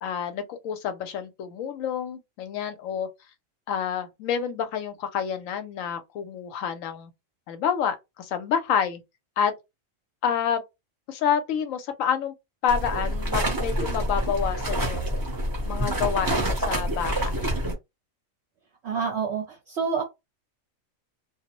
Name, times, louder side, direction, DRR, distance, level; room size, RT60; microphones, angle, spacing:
voice 1, 0.0-3.1 3.7-7.1 7.5-9.0 9.4-9.5 10.2-10.6 11.1-12.3 12.6-15.1 15.7-17.5, left 8 dB, 80° left, 1.0 m, -28 dB
sound 1, 12.7-17.7, right 1 dB, 20° right, 0.7 m, -27 dB
voice 2, 18.8-20.0, right 6 dB, 60° right, 0.8 m, -28 dB
2.4 x 2.0 x 2.8 m
omnidirectional pair, 1.4 m